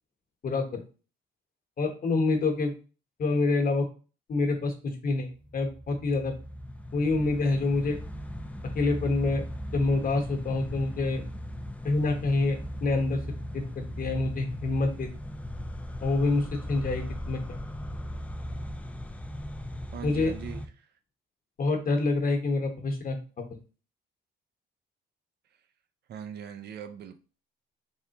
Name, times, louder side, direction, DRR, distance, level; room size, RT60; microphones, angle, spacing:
voice 1, 0.4-0.8 1.8-2.7 3.2-3.9 4.3-6.3 6.9-8.0 8.7-9.4 9.7-11.2 11.8-13.2 13.5-15.1 16.0-17.6 20.0-20.3 21.6-23.5, left 3 dB, 45° left, 1.0 m, -27 dB
sound 1, 5.4-20.7, equal, 5° left, 0.4 m, -38 dB
voice 2, 19.9-20.6 26.1-27.2, right 8 dB, 55° right, 0.5 m, -40 dB
3.6 x 3.3 x 2.9 m
cardioid pair, 90°, 20 cm